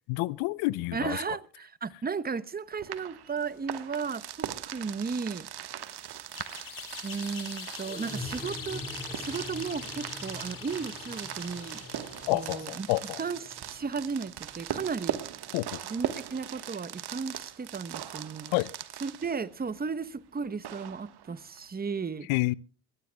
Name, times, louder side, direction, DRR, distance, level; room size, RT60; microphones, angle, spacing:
voice 1, 0.1-1.2 12.3-13.2 15.5-15.8 18.5-18.7 22.3-22.5, left 21 dB, 70° left, 0.7 m, -28 dB
voice 2, 0.9-5.5 7.0-8.8 9.2-11.8 12.3-12.9 13.2-15.2 15.8-18.5 19.0-22.3, right 5 dB, 20° right, 1.0 m, -35 dB
sound 1, 2.8-19.5 20.6-21.6, right 10 dB, 50° right, 1.5 m, -40 dB
sound 2, 5.8-15.8, left 2 dB, 10° left, 3.0 m, -46 dB
sound 3, 6.3-12.7, left 7 dB, 40° left, 2.5 m, -43 dB
23.0 x 17.5 x 2.3 m
hypercardioid pair, 60°, 49 cm